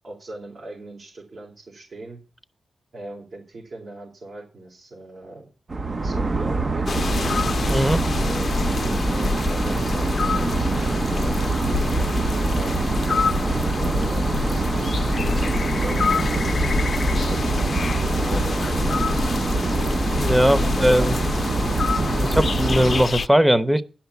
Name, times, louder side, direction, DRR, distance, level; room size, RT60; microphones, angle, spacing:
voice 1, 0.0-2.2 2.9-5.5 6.0-6.9 7.8-8.6 9.1-11.9 12.5-12.9 13.6-16.6 17.1-19.4 19.7-19.9 20.6-21.2 22.1-22.4, right 2 dB, 65° right, 4.0 m, -39 dB
sound 1, 5.7-23.0, right 3 dB, 40° right, 0.6 m, -24 dB
sound 2, 6.9-23.3, left 5 dB, 55° left, 0.5 m, -27 dB
voice 2, 7.7-8.0 20.1-21.2 22.2-23.8, equal, 10° right, 0.9 m, -19 dB
11.0 x 5.8 x 8.1 m
cardioid pair, 85°, 0 cm